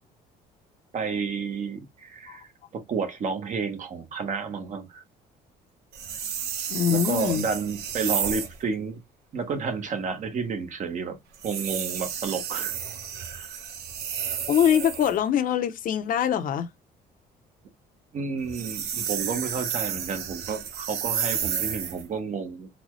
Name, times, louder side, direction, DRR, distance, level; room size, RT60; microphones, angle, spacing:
voice 1, 0.9-5.0 6.9-9.0 9.3-11.2 11.4-12.8 13.1-13.7 18.1-22.7, right 5 dB, 45° right, 1.0 m, -31 dB
sound 1, 5.9-8.6 11.3-15.2 18.4-22.1, right 8 dB, 70° right, 0.8 m, -31 dB
voice 2, 6.7-7.5 14.5-16.7, left 9 dB, 55° left, 0.7 m, -23 dB
4.1 x 2.2 x 3.0 m
cardioid pair, 110°, 17 cm